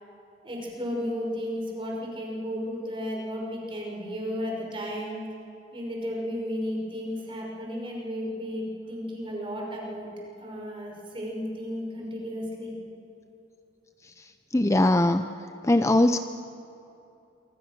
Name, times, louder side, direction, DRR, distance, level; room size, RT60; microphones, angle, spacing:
voice 1, 0.4-5.2 5.7-10.1 10.4-12.7, equal, 25° right, -1 dB, 5.7 m, -33 dB
voice 2, 14.0-15.3 15.6-16.2, left 1 dB, 15° left, 9 dB, 0.6 m, -22 dB
27.0 x 25.0 x 6.8 m, 2.8 s
head